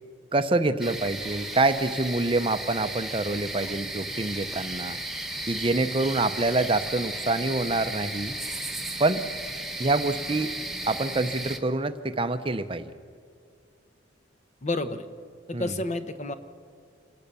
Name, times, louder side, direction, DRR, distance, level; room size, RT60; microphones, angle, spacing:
voice 1, 0.3-5.0 5.5-8.3 9.0-9.2 9.8-10.5 10.9-12.9 15.5-15.7, right 2 dB, 25° right, 10 dB, 0.6 m, -26 dB
sound 1, 0.8-11.6, right 1 dB, ahead, 1.1 m, -35 dB
voice 2, 14.6-15.1 15.5-16.3, left 2 dB, 35° left, 9 dB, 0.9 m, -30 dB
27.0 x 17.5 x 6.8 m, 2.1 s
head